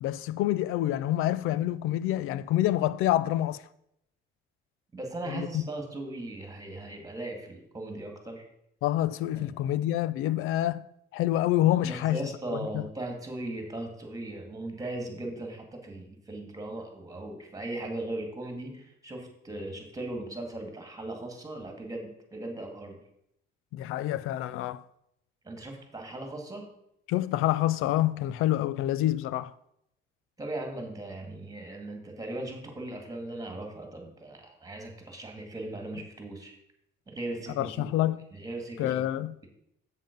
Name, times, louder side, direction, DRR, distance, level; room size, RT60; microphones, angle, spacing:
voice 1, 0.0-3.6 5.3-5.6 8.8-10.8 11.1-12.2 12.5-12.9 23.7-24.8 27.1-29.5 37.6-38.2 38.8-39.3, left 14 dB, 85° left, 0.4 m, -27 dB
voice 2, 4.9-8.4 9.4-9.7 11.8-23.0 25.4-26.7 30.4-36.5 37.1-37.9 38.3-39.0 39.4-39.5, right 2 dB, 15° right, 2.1 m, -38 dB
7.5 x 7.5 x 5.3 m
cardioid pair, 120°, 21 cm